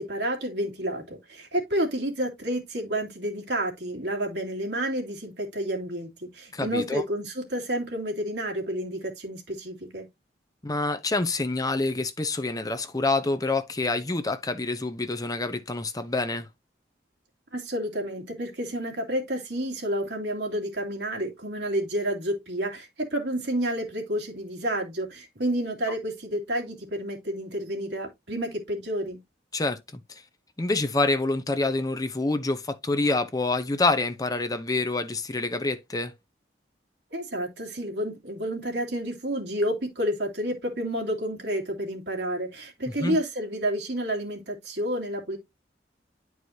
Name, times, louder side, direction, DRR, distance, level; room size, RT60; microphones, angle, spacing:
voice 1, 0.0-10.1 17.5-29.2 37.1-45.4, right 1 dB, 75° right, 2.6 m, -30 dB
voice 2, 6.5-7.0 10.6-16.5 29.5-30.2 30.6-36.1 43.0-43.2, left 2 dB, 20° left, 0.7 m, -27 dB
10.5 x 4.7 x 2.7 m
head